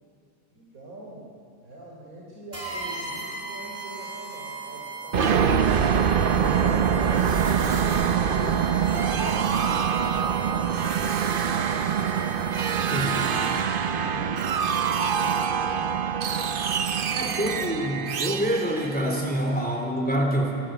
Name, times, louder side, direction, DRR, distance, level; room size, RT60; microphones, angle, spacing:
voice 1, 0.5-1.3 1.6-5.7 6.2-8.7 9.2-12.4 13.0-16.6 17.4-17.7, right 1 dB, 90° right, -4 dB, 4.0 m, -42 dB
sound 1, 2.5-13.9, right 3 dB, 30° right, 3.3 m, -38 dB
sound 2, 5.1-19.8, right 7 dB, 45° right, 0.8 m, -24 dB
voice 2, 12.9-13.3 17.1-20.6, equal, 5° left, 2 dB, 3.4 m, -26 dB
28.0 x 19.5 x 9.1 m, 2.4 s
omnidirectional pair, 1.4 m